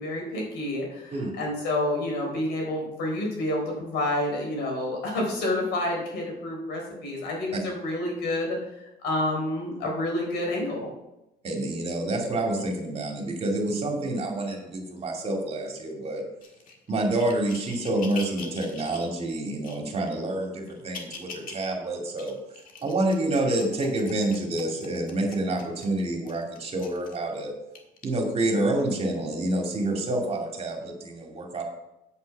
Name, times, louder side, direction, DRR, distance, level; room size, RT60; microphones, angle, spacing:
voice 1, 0.0-8.6 9.0-10.9, left 1 dB, 85° left, 0 dB, 4.0 m, -29 dB
voice 2, 11.4-16.2 16.9-22.3 22.8-27.5 28.0-31.6, right 1 dB, 35° right, 1 dB, 2.5 m, -28 dB
sound 1, 16.4-19.1 19.6-20.2 20.7-21.7 22.1-27.2 27.8-28.0 28.8-28.9, left 4 dB, 55° left, 1.7 m, -44 dB
8.5 x 8.2 x 4.6 m, 0.92 s
cardioid pair, 110°, 17 cm